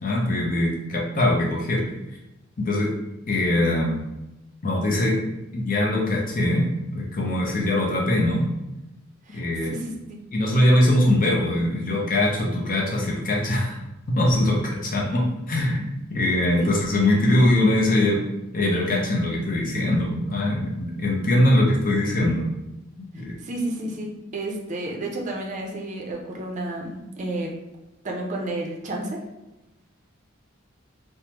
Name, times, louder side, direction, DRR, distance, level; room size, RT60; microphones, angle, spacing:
voice 1, 0.0-1.8 2.6-2.9 3.3-4.0 4.6-5.2 5.5-8.5 9.3-9.7 10.3-13.8 14.1-18.2 18.5-22.5 23.1-23.4, left 1 dB, 45° left, -2 dB, 0.6 m, -22 dB
voice 2, 9.7-10.2 16.6-16.7 23.1-27.6 28.0-29.2, right 1 dB, 40° right, 0 dB, 0.5 m, -31 dB
3.5 x 2.0 x 2.9 m, 0.94 s
head